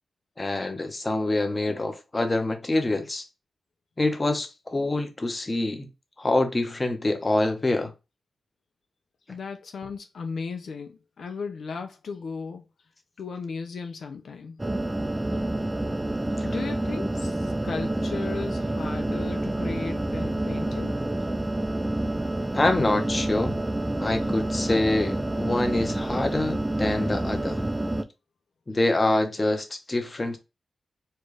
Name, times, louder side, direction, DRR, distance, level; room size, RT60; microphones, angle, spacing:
voice 1, 0.4-3.2 4.0-5.9 6.2-7.9 16.4-16.5 22.5-23.6 24.0-27.6 28.7-30.4, left 2 dB, 30° left, 0.9 m, -26 dB
voice 2, 9.3-12.6 13.2-14.6 16.4-20.9, left 5 dB, 75° left, 0.4 m, -36 dB
sound 1, 14.6-28.0, right 1 dB, 15° right, 0.5 m, -28 dB
4.3 x 2.4 x 3.2 m
cardioid pair, 70°, 0 cm